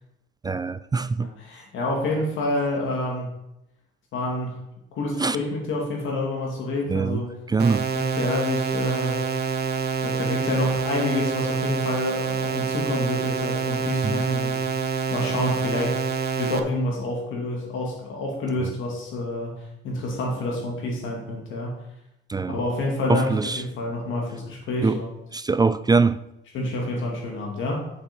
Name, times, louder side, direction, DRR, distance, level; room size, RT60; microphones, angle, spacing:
voice 1, 0.4-1.3 5.2-5.4 6.9-7.2 7.5-7.9 14.0-14.2 22.3-22.5 23.1-23.6 24.8-25.0 25.3-26.2, right 4 dB, 20° right, 0.3 m, -22 dB
voice 2, 1.2-3.4 4.1-4.6 4.9-7.4 7.9-9.2 10.0-14.6 15.1-16.0 16.4-19.5 19.8-21.8 22.5-25.1 26.5-27.9, left 2 dB, 80° left, 2.6 m, -28 dB
sound 1, 7.6-16.6, right 5 dB, 55° right, 0.9 m, -27 dB
7.2 x 6.9 x 4.5 m
cardioid pair, 90°, 20 cm